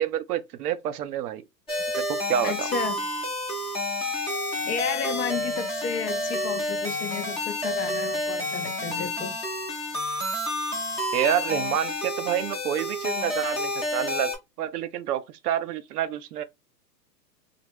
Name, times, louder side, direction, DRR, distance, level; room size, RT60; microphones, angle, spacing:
voice 1, 0.0-1.4 2.0-2.7 11.1-16.4, right 10 dB, 65° right, 0.6 m, -28 dB
sound 1, 1.7-14.4, left 1 dB, 10° left, 0.5 m, -30 dB
voice 2, 2.4-3.1 4.6-9.4, left 6 dB, 65° left, 0.9 m, -32 dB
3.1 x 2.1 x 3.3 m
hypercardioid pair, 135°, 49 cm